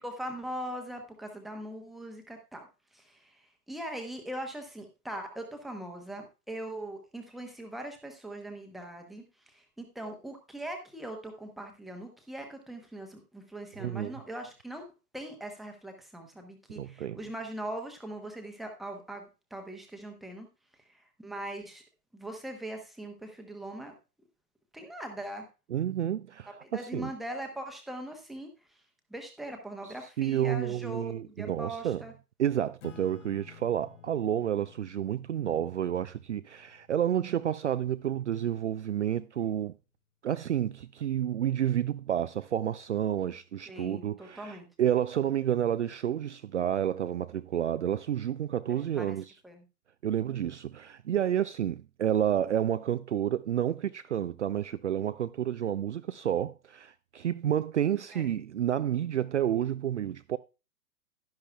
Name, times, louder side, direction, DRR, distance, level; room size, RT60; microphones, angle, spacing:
voice 1, 0.0-2.7 2.9-14.9 15.1-20.5 20.8-21.8 22.1-23.9 24.7-25.5 26.6-28.8 29.1-32.1 43.7-44.7 48.7-49.2 49.4-49.6 58.1-58.3, right 1 dB, ahead, 0.9 m, -41 dB
voice 2, 13.8-14.1 16.8-17.2 25.7-27.1 30.2-32.0 32.4-39.7 40.2-49.2 50.0-60.4, right 10 dB, 50° right, 0.4 m, -30 dB
Acoustic guitar / Strum, 32.8-37.8, left 10 dB, 50° left, 1.0 m, -54 dB
11.5 x 10.5 x 2.2 m
figure-of-eight pair, 120°, 46 cm